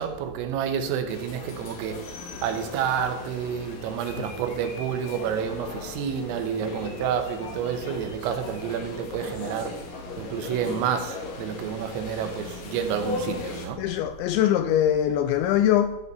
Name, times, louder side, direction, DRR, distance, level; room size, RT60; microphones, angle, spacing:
voice 1, 0.0-13.9, right 8 dB, 90° right, 3.7 m, -29 dB
sound 1, 1.1-13.7, left 4 dB, 60° left, 2.4 m, -38 dB
voice 2, 13.8-16.0, left 11 dB, 85° left, 2.6 m, -22 dB
12.5 x 5.4 x 6.6 m
omnidirectional pair, 5.8 m